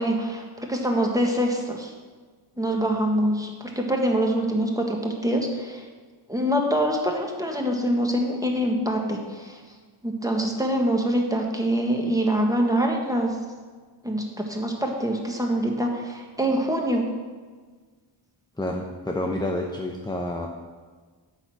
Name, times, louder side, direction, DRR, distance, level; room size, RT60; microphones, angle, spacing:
voice 1, 0.0-1.9 2.6-5.8 6.3-9.6 10.0-13.4 14.0-17.0, right 1 dB, 5° right, 1 dB, 1.5 m, -25 dB
voice 2, 18.6-20.5, left 1 dB, 10° left, 1 dB, 0.7 m, -29 dB
9.7 x 4.1 x 7.5 m, 1.5 s
wide cardioid pair, 70°, 49 cm